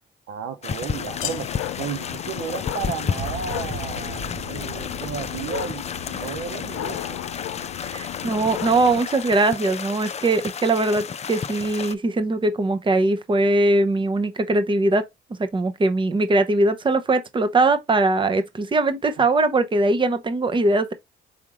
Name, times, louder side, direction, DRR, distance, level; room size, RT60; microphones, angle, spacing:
voice 1, 0.3-7.2 19.2-19.3, right 8 dB, 80° right, 0.7 m, -33 dB
sound 1, 0.6-11.9, left 7 dB, 35° left, 0.5 m, -32 dB
sound 2, 0.9-9.0, left 14 dB, 85° left, 0.5 m, -34 dB
sound 3, 3.1-9.3, right 2 dB, 45° right, 1.1 m, -39 dB
voice 2, 7.8-15.1 15.4-20.9, right 2 dB, 25° right, 0.7 m, -21 dB
5.0 x 3.6 x 3.0 m
cardioid pair, 90°, 20 cm